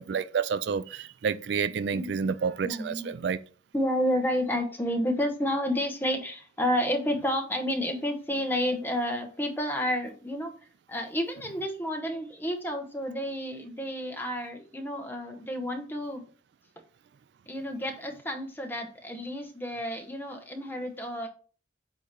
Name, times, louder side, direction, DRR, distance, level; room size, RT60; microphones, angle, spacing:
voice 1, 0.0-3.4, right 6 dB, 65° right, 0.3 m, -29 dB
voice 2, 1.9-2.3 2.6-3.1 3.7-10.5 10.9-16.2 17.5-21.3, equal, 10° left, 0.9 m, -30 dB
8.3 x 2.9 x 5.2 m
head